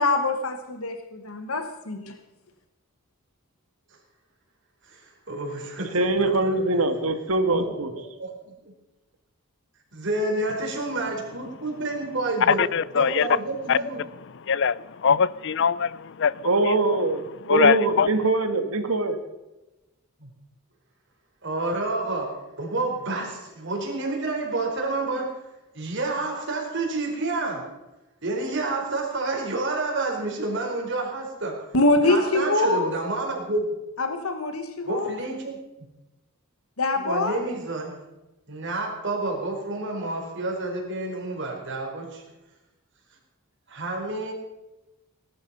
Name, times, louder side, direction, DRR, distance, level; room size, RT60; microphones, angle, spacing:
voice 1, 0.0-2.1 31.7-32.9 34.0-35.2 36.8-37.4, left 2 dB, 80° left, 1.4 m, -24 dB
voice 2, 4.9-6.9 7.5-7.7 8.2-8.3 9.9-12.6 12.9-14.0 20.2-20.3 21.4-25.3 25.7-27.7 28.2-31.6 32.1-33.7 34.9-35.5 37.0-38.0 38.5-42.2 43.7-44.3, right 2 dB, 60° right, 4.6 m, -29 dB
voice 3, 5.9-7.9 16.4-19.2, right 2 dB, 80° right, 1.9 m, -23 dB
voice 4, 12.5-13.3 13.7-13.8 14.4-16.8 17.5-18.1, left 6 dB, 60° left, 0.5 m, -22 dB
19.5 x 12.0 x 5.5 m
head